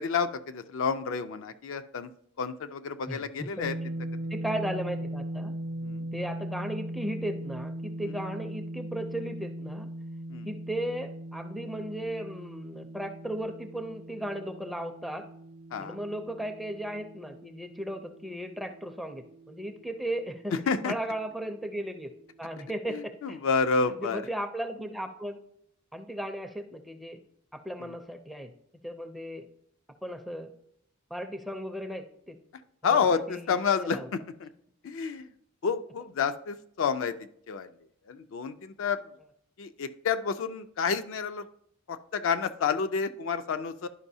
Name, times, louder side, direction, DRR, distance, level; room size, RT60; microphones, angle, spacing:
voice 1, 0.0-2.1 2.4-3.9 5.8-6.1 10.3-10.5 15.7-16.0 20.5-20.9 22.9-24.2 27.8-28.0 32.8-34.5 34.8-35.3 35.6-37.2 37.5-37.7 38.1-39.0 39.6-41.5 41.9-43.9, left 5 dB, 65° left, 10 dB, 0.4 m, -29 dB
voice 2, 3.1-3.5 4.3-5.6 6.1-9.9 10.4-15.3 15.8-20.5 20.8-22.1 22.4-23.4 23.9-25.4 25.9-27.2 27.6-28.5 28.8-29.5 30.0-30.5 31.1-32.4 32.9-34.1, right 1 dB, ahead, 7 dB, 0.4 m, -36 dB
sound 1, 3.6-19.6, right 1 dB, 75° right, 0.6 m, -39 dB
11.0 x 5.3 x 2.7 m, 0.69 s
head